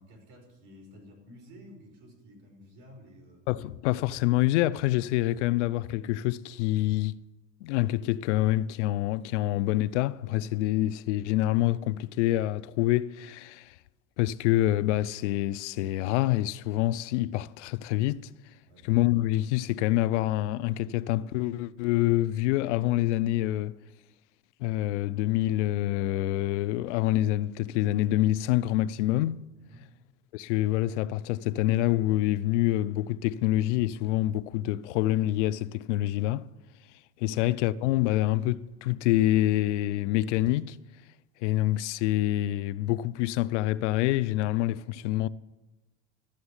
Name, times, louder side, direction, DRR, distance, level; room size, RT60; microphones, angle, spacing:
voice 1, 0.0-3.4 18.7-18.9 29.6-29.9 37.3-37.4, equal, 65° right, 5.1 m, -52 dB
voice 2, 3.5-7.2 7.6-13.7 14.2-18.2 18.8-23.8 24.6-29.4 30.3-36.5 37.2-40.8 41.4-45.3, left 15 dB, 70° left, 0.6 m, -26 dB
13.0 x 7.1 x 9.7 m
supercardioid pair, 175°, 37 cm